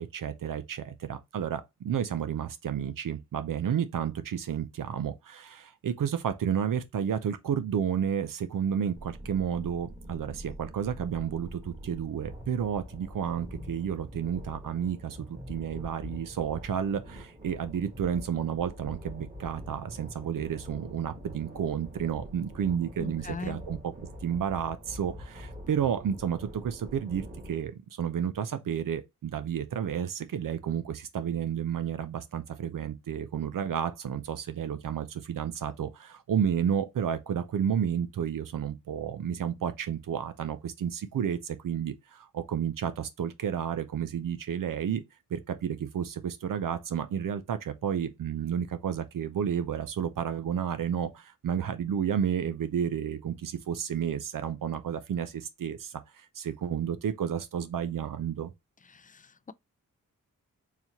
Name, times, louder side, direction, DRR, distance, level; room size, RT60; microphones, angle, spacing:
voice 1, 0.0-23.9 24.2-45.0 45.3-58.5, right 8 dB, 70° right, 0.5 m, -31 dB
sound 1, 8.9-27.6, equal, 25° right, 1.4 m, -44 dB
voice 2, 23.0-23.6 58.8-59.5, left 4 dB, 25° left, 0.4 m, -41 dB
4.0 x 2.8 x 2.9 m
cardioid pair, 55°, 34 cm